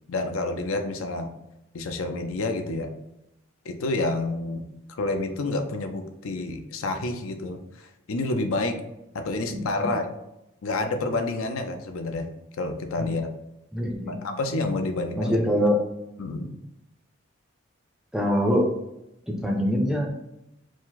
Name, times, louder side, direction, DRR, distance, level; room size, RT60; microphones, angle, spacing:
voice 1, 0.1-1.3 1.7-2.9 3.6-4.6 4.9-8.8 9.1-10.1 10.6-12.3 12.6-13.3 14.1-15.4 16.2-16.6, left 2 dB, 75° left, 6 dB, 0.5 m, -29 dB
voice 2, 9.5-9.9 13.7-14.2 15.1-15.8 18.1-18.7 19.3-20.1, equal, 5° right, 0 dB, 0.5 m, -24 dB
4.7 x 2.0 x 4.0 m, 0.88 s
head